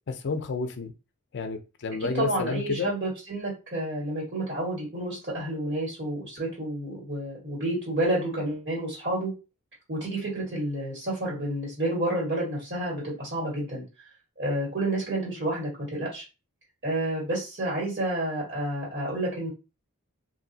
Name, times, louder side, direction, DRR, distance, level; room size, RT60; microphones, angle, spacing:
voice 1, 0.1-0.9 1.3-2.9, left 4 dB, 55° left, 0.5 m, -30 dB
voice 2, 2.0-9.3 9.9-13.8 14.4-16.2 16.8-19.5, right 1 dB, 50° right, 1.6 m, -30 dB
2.9 x 2.7 x 2.7 m
head